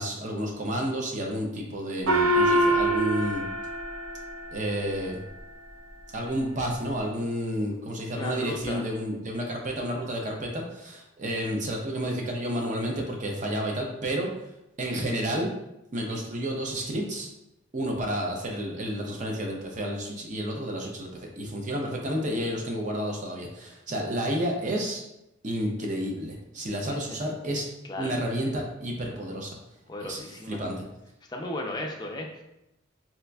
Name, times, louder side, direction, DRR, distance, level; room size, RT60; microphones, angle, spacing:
voice 1, 0.0-3.4 4.5-5.2 6.1-14.3 14.8-15.5 15.9-17.3 17.7-25.0 25.4-27.7 28.0-29.6 30.0-30.7, equal, 40° right, 1 dB, 0.5 m, -30 dB
Gong, 2.1-5.0, right 1 dB, 85° right, 0.4 m, -25 dB
voice 2, 8.1-8.9 27.8-28.1 29.9-30.6 31.3-32.4, left 1 dB, 20° left, 1 dB, 0.4 m, -35 dB
4.2 x 2.4 x 2.3 m, 0.86 s
head